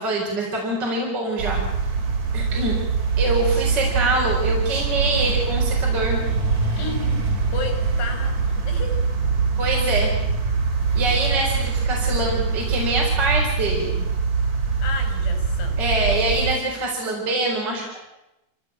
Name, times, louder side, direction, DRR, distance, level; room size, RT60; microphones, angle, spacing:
voice 1, 0.0-1.6 2.3-2.8 3.2-6.2 9.6-10.1 10.9-14.1 15.8-18.0, right 2 dB, 25° right, -2 dB, 4.8 m, -24 dB
sound 1, 1.4-16.5, right 5 dB, 45° right, 4.2 m, -23 dB
voice 2, 6.7-9.0 11.8-12.6 14.8-15.8, left 4 dB, 85° left, 4 dB, 6.6 m, -34 dB
25.5 x 17.0 x 8.8 m, 0.91 s
omnidirectional pair, 4.7 m